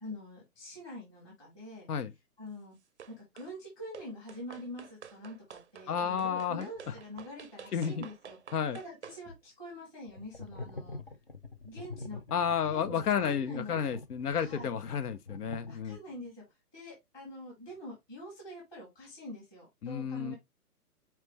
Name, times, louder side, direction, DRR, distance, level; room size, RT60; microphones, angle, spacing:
voice 1, 0.0-1.9 2.4-2.8 3.1-8.4 8.7-11.0 11.6-12.2 12.7-13.9 14.4-14.7 15.7-16.4 16.7-20.4, left 1 dB, 5° left, 0.9 m, -45 dB
sound 1, 3.0-3.5 3.9-9.2, right 7 dB, 50° right, 0.5 m, -50 dB
voice 2, 5.9-6.9 7.7-8.0 8.5-8.8 12.3-16.0 19.8-20.4, left 7 dB, 70° left, 0.8 m, -31 dB
sound 2, 10.1-16.2, left 3 dB, 40° left, 0.4 m, -45 dB
4.4 x 3.2 x 3.2 m
hypercardioid pair, 165°, 47 cm